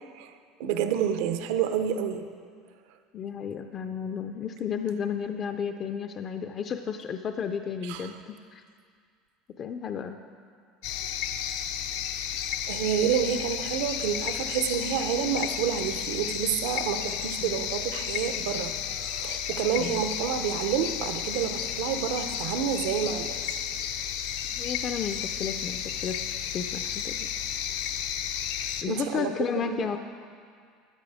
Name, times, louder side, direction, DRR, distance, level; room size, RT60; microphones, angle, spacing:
voice 1, 0.6-2.3 7.8-8.1 12.7-18.8 19.0-23.4 28.9-29.9, right 8 dB, 80° right, 8 dB, 0.8 m, -29 dB
voice 2, 3.1-8.6 9.6-10.2 17.4-17.6 19.8-20.1 24.5-26.2 26.5-27.3 28.8-30.0, left 7 dB, 35° left, 7 dB, 0.4 m, -33 dB
sound 1, 10.8-28.8, left 9 dB, 80° left, 0.7 m, -32 dB
12.5 x 9.6 x 4.9 m, 2.1 s
cardioid pair, 150°, 0 cm